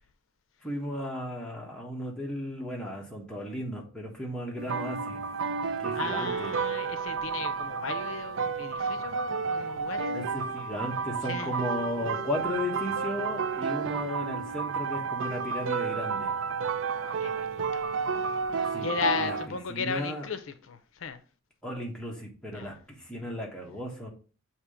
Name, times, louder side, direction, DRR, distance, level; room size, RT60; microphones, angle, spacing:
voice 1, 0.6-5.2 5.8-6.5 10.1-16.3 18.7-18.9 19.2-19.4 19.7-20.3 21.6-24.1, left 1 dB, 5° left, 1.2 m, -35 dB
sound 1, 4.6-19.5, right 5 dB, 70° right, 0.4 m, -31 dB
voice 2, 5.9-10.3 11.3-11.5 16.9-18.2 18.5-21.2 22.5-22.7, left 6 dB, 75° left, 0.5 m, -36 dB
7.1 x 2.9 x 4.9 m
head